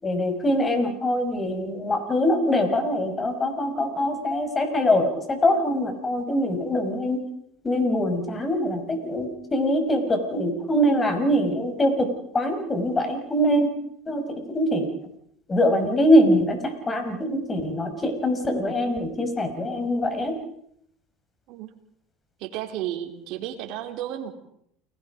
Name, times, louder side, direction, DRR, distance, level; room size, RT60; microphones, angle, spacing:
voice 1, 0.0-7.2 7.6-13.7 14.1-14.9 15.5-20.4, equal, 20° left, 6 dB, 5.7 m, -23 dB
voice 2, 22.4-24.3, right 11 dB, 65° right, 5 dB, 3.7 m, -33 dB
29.5 x 19.5 x 5.2 m, 0.73 s
supercardioid pair, 100°, 0 cm